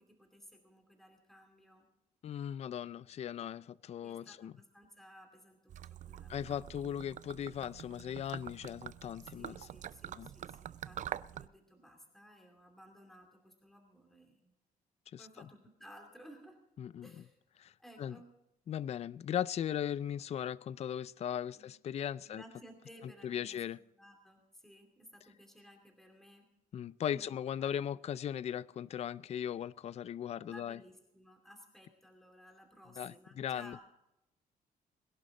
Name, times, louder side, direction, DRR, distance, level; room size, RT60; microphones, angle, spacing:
voice 1, 0.0-1.9 4.0-6.6 9.2-14.5 15.2-16.6 17.0-17.4 17.8-18.3 21.6-21.7 22.2-23.6 24.0-26.5 27.1-27.8 30.4-33.8, equal, ahead, 2.6 m, -57 dB
voice 2, 2.2-4.5 6.3-9.7 10.1-10.3 15.1-15.5 16.8-17.1 17.6-17.7 18.0-18.2 18.7-22.4 23.2-23.8 26.7-30.8 33.0-33.8, left 9 dB, 45° left, 0.4 m, -38 dB
Gurgling / Liquid, 5.7-11.5, right 10 dB, 55° right, 0.4 m, -46 dB
21.5 x 11.5 x 3.8 m
cardioid pair, 120°, 15 cm